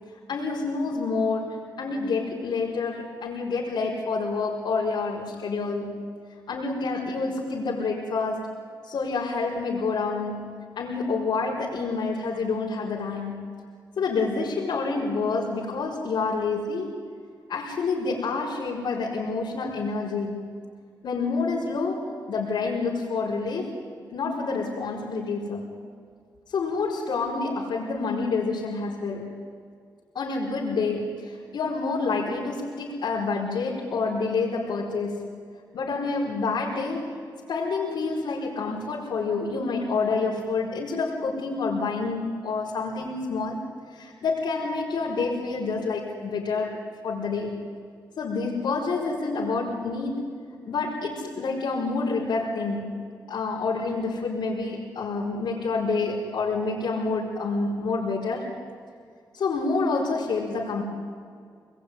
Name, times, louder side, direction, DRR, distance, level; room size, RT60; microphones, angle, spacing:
voice 1, 0.3-6.0 6.5-8.5 8.8-13.4 14.0-17.0 17.5-20.4 21.0-23.8 24.1-25.6 26.5-29.3 30.1-35.3 35.7-37.2 37.5-43.6 43.9-47.6 48.2-50.3 50.7-58.5 59.3-60.8, left 4 dB, 80° left, -6 dB, 4.8 m, -28 dB
27.0 x 21.0 x 9.7 m, 2.1 s
wide cardioid pair, 175°, 8 cm